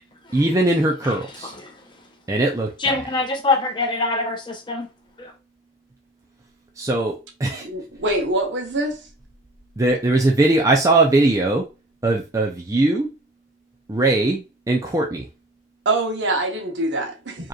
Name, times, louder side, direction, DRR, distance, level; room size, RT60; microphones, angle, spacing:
voice 1, 0.3-1.5 2.3-3.0 6.8-7.7 9.8-11.7 12.0-13.1 13.9-15.3, right 2 dB, 15° right, 0.4 m, -20 dB
voice 2, 1.4-2.0 2.8-4.9 5.2-5.3, left 3 dB, 25° left, 0.8 m, -25 dB
voice 3, 7.6-9.1 15.8-17.5, right 2 dB, 75° right, 1.1 m, -24 dB
4.9 x 2.9 x 2.4 m
head